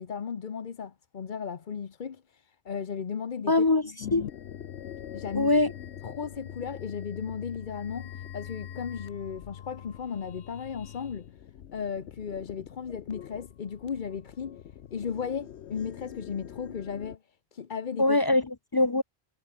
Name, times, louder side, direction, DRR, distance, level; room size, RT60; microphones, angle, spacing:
voice 1, 0.0-3.7 5.1-5.5 6.0-11.3 11.7-14.6 14.9-17.2 17.5-18.2, left 7 dB, 50° left, 1.0 m, -35 dB
voice 2, 3.5-4.3 5.3-5.7 18.0-19.0, left 2 dB, 30° left, 0.5 m, -23 dB
sound 1, 4.0-17.2, left 10 dB, 80° left, 1.1 m, -43 dB
omnidirectional pair, 1.1 m